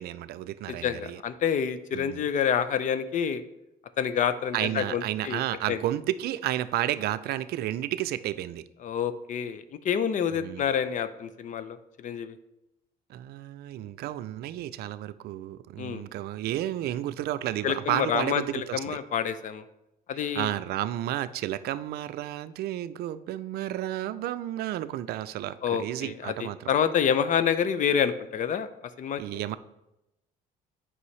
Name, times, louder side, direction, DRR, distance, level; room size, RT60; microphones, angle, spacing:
voice 1, 0.0-1.2 1.9-2.2 4.5-8.6 10.4-10.7 13.1-19.0 20.1-26.7 29.2-29.6, right 13 dB, 70° right, 14 dB, 0.4 m, -32 dB
voice 2, 0.7-3.4 4.0-5.4 5.7-5.8 8.8-12.4 15.8-16.0 17.6-19.6 20.1-20.5 25.6-28.7 29.0-29.2, left 8 dB, 50° left, 13 dB, 0.5 m, -28 dB
8.4 x 5.4 x 3.2 m, 0.90 s
cardioid pair, 110°, 17 cm